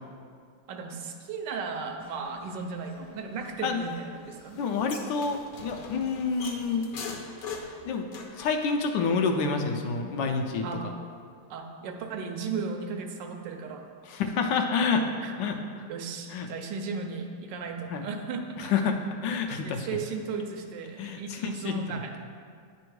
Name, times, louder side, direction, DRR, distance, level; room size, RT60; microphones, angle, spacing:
voice 1, 0.7-4.6 10.6-10.9 11.5-13.9 15.2-15.3 15.9-18.9 19.6-22.2, right 4 dB, 75° right, 4 dB, 1.2 m, -36 dB
sound 1, 2.0-8.6, left 4 dB, 60° left, 1.0 m, -43 dB
voice 2, 4.6-6.9 7.8-8.1 8.4-10.6 14.1-15.0 15.4-15.6 16.3-16.5 17.9-18.1 18.6-19.0 19.2-19.9 21.0-21.4 21.6-21.8, left 5 dB, 80° left, 4 dB, 1.3 m, -28 dB
9.6 x 3.5 x 4.6 m, 2.2 s
omnidirectional pair, 2.0 m